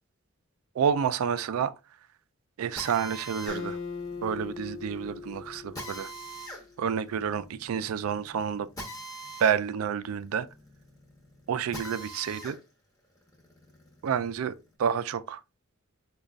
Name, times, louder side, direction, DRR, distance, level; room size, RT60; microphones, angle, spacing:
voice 1, 0.8-1.7 2.6-3.8 4.2-6.1 6.8-8.7 9.4-10.5 11.5-12.6 14.0-15.4, right 7 dB, 80° right, 0.3 m, -29 dB
Drill, 2.8-12.6 13.0-14.6, right 1 dB, 15° left, 0.8 m, -44 dB
Acoustic guitar, 3.5-6.9, left 4 dB, 85° left, 0.7 m, -40 dB
5.1 x 2.3 x 2.4 m
head